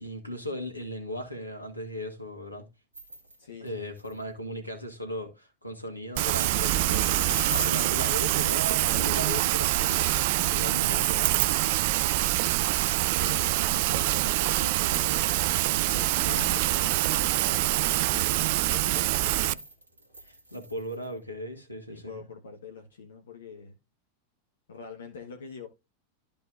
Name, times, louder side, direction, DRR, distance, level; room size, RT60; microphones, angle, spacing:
voice 1, 0.0-2.7 3.6-11.6 20.2-22.2, equal, 85° left, 2.0 m, -37 dB
sound 1, 2.9-3.4 3.7-3.8 4.0-4.1 6.2-7.9 9.5-10.6 11.0-11.1 13.1-15.8 16.2-16.7 19.4-21.1, right 1 dB, 75° right, 1.9 m, -40 dB
voice 2, 3.4-3.9 8.8-9.3 13.2-15.4 15.9-19.6 21.9-23.8 24.7-25.7, left 5 dB, 65° left, 1.3 m, -44 dB
Rain, 6.2-19.5, right 17 dB, 50° right, 0.4 m, -25 dB
13.0 x 5.3 x 2.5 m
figure-of-eight pair, 90°, 0 cm